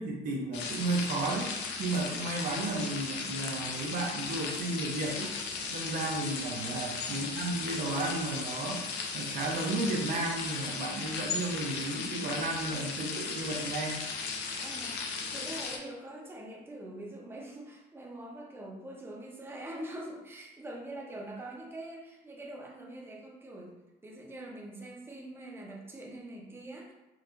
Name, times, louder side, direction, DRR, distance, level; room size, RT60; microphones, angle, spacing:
voice 1, 0.0-1.5 1.8-5.3 5.7-14.0, right 2 dB, 55° right, 0 dB, 0.7 m, -33 dB
sound 1, 0.5-15.8, left 5 dB, 90° left, 0.6 m, -36 dB
voice 2, 14.6-23.7 24.0-26.9, right 1 dB, 15° right, -2 dB, 0.7 m, -44 dB
4.6 x 2.4 x 2.4 m, 1.1 s
cardioid pair, 110°, 17 cm